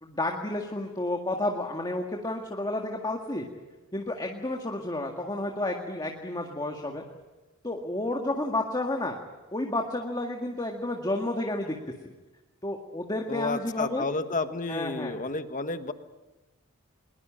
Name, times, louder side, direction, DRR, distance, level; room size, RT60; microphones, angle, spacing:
voice 1, 0.0-3.5 3.9-7.0 7.6-9.2 9.5-11.8 12.0-12.1 12.6-14.1 14.7-15.2, left 1 dB, 20° left, 2 dB, 1.9 m, -31 dB
voice 2, 13.3-15.9, left 3 dB, 40° left, 9 dB, 1.4 m, -31 dB
22.0 x 21.5 x 8.8 m, 1.1 s
head